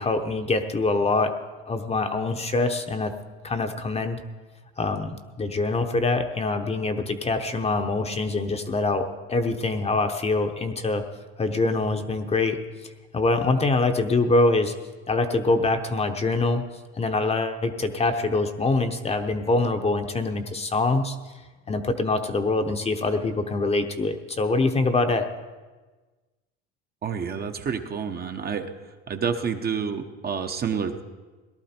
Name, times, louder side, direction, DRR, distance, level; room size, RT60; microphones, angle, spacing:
voice 1, 0.0-1.3 1.7-3.1 3.4-4.2 4.8-11.0 11.4-12.6 13.1-14.7 15.1-16.6 17.0-21.2 21.7-25.3, left 3 dB, 20° left, 6 dB, 0.9 m, -24 dB
voice 2, 27.0-28.7 29.1-31.0, right 6 dB, 30° right, 5 dB, 0.9 m, -29 dB
18.0 x 12.0 x 4.4 m, 1.3 s
supercardioid pair, 105°, 31 cm